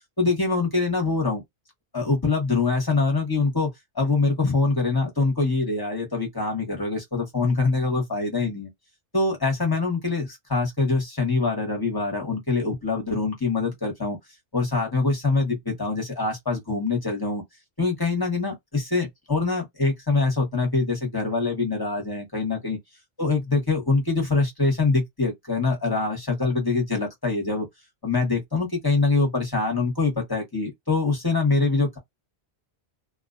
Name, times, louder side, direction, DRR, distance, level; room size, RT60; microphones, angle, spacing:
voice 1, 0.2-1.4 1.9-8.7 9.1-14.2 14.5-17.4 17.8-22.8 23.2-27.7 28.0-32.0, left 3 dB, 20° left, 0.9 m, -24 dB
2.4 x 2.2 x 2.4 m
omnidirectional pair, 1.1 m